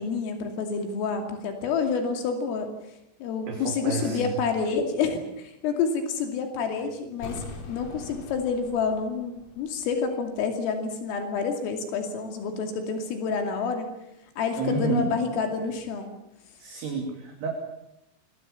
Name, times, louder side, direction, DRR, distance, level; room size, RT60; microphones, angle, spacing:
voice 1, 0.0-2.7 3.2-13.9 14.4-16.1, left 5 dB, 80° left, 4 dB, 5.2 m, -28 dB
voice 2, 3.5-4.4 14.6-15.1 16.6-17.5, right 3 dB, 55° right, 2 dB, 4.8 m, -30 dB
sound 1, 7.2-10.1 10.4-10.5, left 2 dB, 40° left, 3.7 m, -42 dB
26.5 x 23.0 x 7.2 m, 0.85 s
omnidirectional pair, 5.8 m